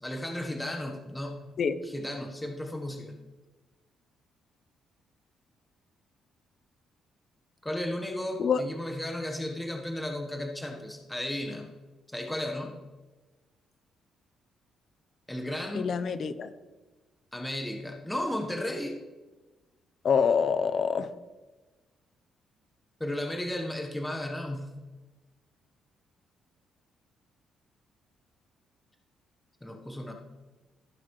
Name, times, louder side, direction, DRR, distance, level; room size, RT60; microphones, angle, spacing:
voice 1, 0.0-1.4 1.8-3.1 7.6-11.7 12.1-12.8 15.3-16.0 17.3-19.0 23.0-24.7 29.6-30.1, left 1 dB, 10° left, 3 dB, 1.2 m, -34 dB
voice 2, 15.7-16.5 20.0-21.1, left 6 dB, 55° left, 12 dB, 0.7 m, -26 dB
15.5 x 6.0 x 3.2 m, 1.2 s
cardioid pair, 90°, 0 cm